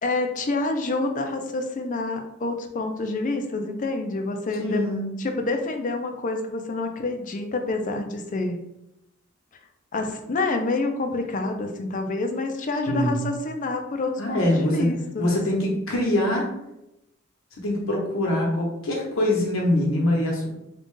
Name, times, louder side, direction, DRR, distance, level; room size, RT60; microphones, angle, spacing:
voice 1, 0.0-4.9 5.2-8.6 9.9-15.7, left 2 dB, 40° left, 5 dB, 0.5 m, -28 dB
voice 2, 4.6-5.1 12.9-13.2 14.2-14.9 15.2-16.5 17.6-20.5, left 1 dB, 75° left, -1 dB, 1.1 m, -24 dB
3.8 x 2.4 x 3.7 m, 0.89 s
head